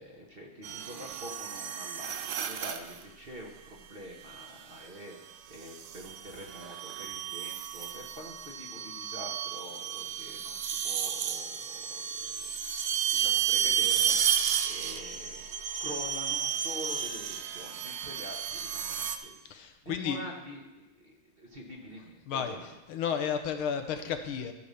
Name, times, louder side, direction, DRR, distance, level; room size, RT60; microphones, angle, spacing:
voice 1, 0.0-12.8 13.1-22.7, equal, 30° right, -1 dB, 1.2 m, -46 dB
sound 1, 0.6-3.0 4.4-4.8 5.6-19.2, right 9 dB, 70° right, 1.3 m, -32 dB
voice 2, 19.5-20.2 22.3-22.6 22.9-24.5, left 7 dB, 85° left, 6 dB, 1.8 m, -32 dB
14.0 x 4.9 x 6.8 m, 1.0 s
omnidirectional pair, 2.3 m